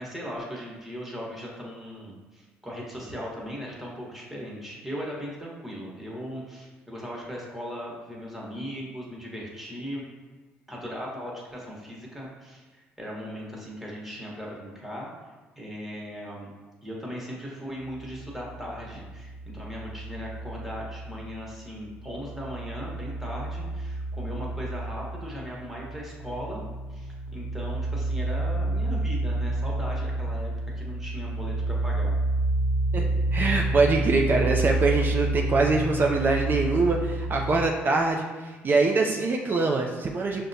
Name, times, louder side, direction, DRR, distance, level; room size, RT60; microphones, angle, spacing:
voice 1, 0.0-10.0 10.7-15.1 15.6-16.5 16.8-26.6 26.9-32.1, equal, 5° right, -4 dB, 1.1 m, -38 dB
sound 1, 17.8-21.6 21.9-37.7, right 2 dB, 75° left, 0.4 m, -30 dB
voice 2, 32.9-40.5, right 3 dB, 40° right, 1 dB, 0.4 m, -24 dB
5.4 x 2.1 x 2.6 m, 1.3 s
supercardioid pair, 65°, 5 cm